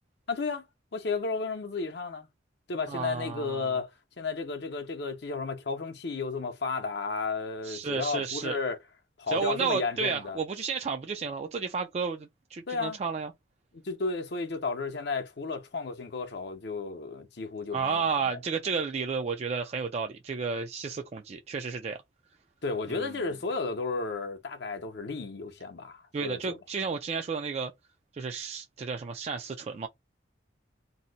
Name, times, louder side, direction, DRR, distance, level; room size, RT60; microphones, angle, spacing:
voice 1, 0.3-0.7 0.9-2.3 2.7-3.9 4.2-8.8 9.2-10.4 12.7-13.0 13.7-18.4 22.6-26.6, left 4 dB, 60° left, 0.7 m, -33 dB
voice 2, 2.9-3.8 7.6-8.6 9.3-13.3 17.7-22.0 22.9-23.1 26.1-27.7 28.1-29.9, right 5 dB, 35° right, 0.3 m, -32 dB
2.7 x 2.1 x 3.9 m
head